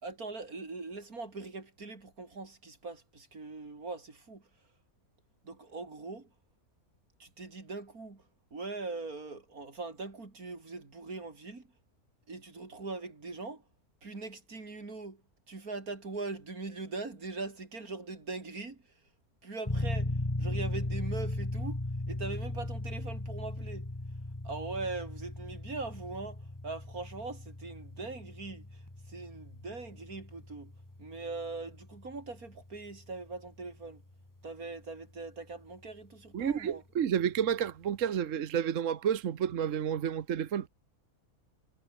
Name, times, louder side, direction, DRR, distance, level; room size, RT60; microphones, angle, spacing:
voice 1, 0.0-4.5 5.4-6.3 7.2-8.2 8.5-11.7 12.3-13.6 14.0-15.2 15.5-18.8 19.4-23.9 24.4-30.7 31.0-34.0 34.4-36.8, right 3 dB, 85° right, 4.2 m, -41 dB
sound 1, 19.7-34.1, left 1 dB, 15° left, 1.8 m, -38 dB
voice 2, 36.3-40.7, right 8 dB, 65° right, 1.3 m, -30 dB
omnidirectional pair, 1.5 m